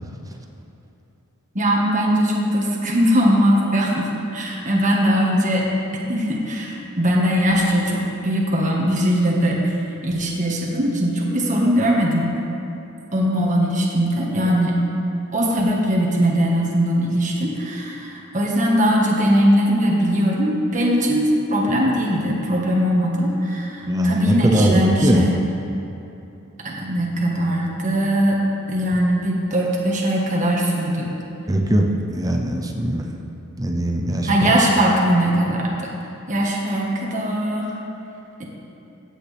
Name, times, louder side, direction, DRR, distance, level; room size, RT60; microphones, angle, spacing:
voice 1, 1.6-5.7 6.1-9.7 10.0-12.3 13.1-14.8 15.3-25.3 26.6-28.4 28.7-31.1 34.3-35.7 36.3-37.7 38.4-38.5, equal, 35° right, -3 dB, 1.7 m, -20 dB
voice 2, 23.8-25.3 31.5-33.1 33.6-34.6, right 1 dB, 15° right, 2 dB, 0.7 m, -20 dB
16.0 x 8.8 x 3.5 m, 2.9 s
head